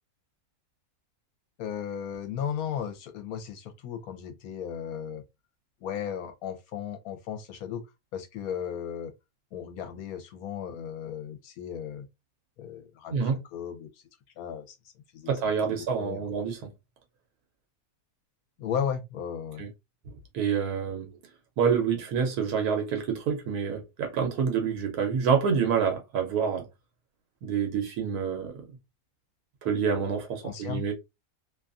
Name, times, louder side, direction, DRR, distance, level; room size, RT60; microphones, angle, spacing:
voice 1, 1.6-5.2 5.8-7.8 8.1-9.1 9.5-12.1 12.6-13.9 14.4-14.8 15.1-15.3 15.6-16.2 18.6-19.6 30.4-30.8, left 8 dB, 80° left, 1.1 m, -35 dB
voice 2, 15.3-16.6 19.6-19.7 20.3-21.1 21.6-26.6 27.4-28.5 29.6-30.9, right 6 dB, 85° right, 1.2 m, -27 dB
2.8 x 2.3 x 2.4 m
omnidirectional pair, 1.6 m